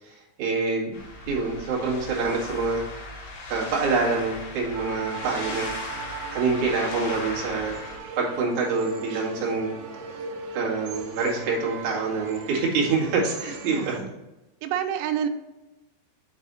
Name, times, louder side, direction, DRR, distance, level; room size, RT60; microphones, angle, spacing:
voice 1, 0.0-1.0 1.3-2.8 3.5-6.0 6.3-7.7 8.2-9.7 10.5-14.0, right 4 dB, 55° right, -4 dB, 2.6 m, -26 dB
sound 1, 0.9-8.0, left 2 dB, 70° left, 2.9 m, -37 dB
sound 2, 4.7-14.0, right 4 dB, 75° right, 2.2 m, -38 dB
voice 2, 13.7-14.1 14.6-15.3, right 9 dB, 90° right, 7 dB, 3.0 m, -28 dB
7.2 x 4.7 x 3.9 m, 1.0 s
omnidirectional pair, 5.2 m